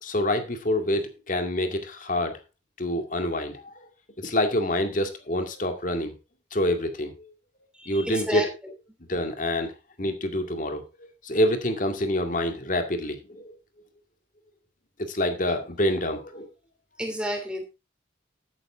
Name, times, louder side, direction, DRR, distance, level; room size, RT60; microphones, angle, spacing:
voice 1, 0.0-2.4 2.8-3.8 4.2-6.1 6.5-7.3 7.9-8.4 9.1-9.7 10.0-10.8 11.2-13.5 15.1-16.5, left 1 dB, 45° left, 6 dB, 2.1 m, -26 dB
voice 2, 7.8-8.5 17.0-17.6, equal, 5° right, 3 dB, 3.0 m, -31 dB
12.5 x 9.5 x 3.6 m, 0.28 s
head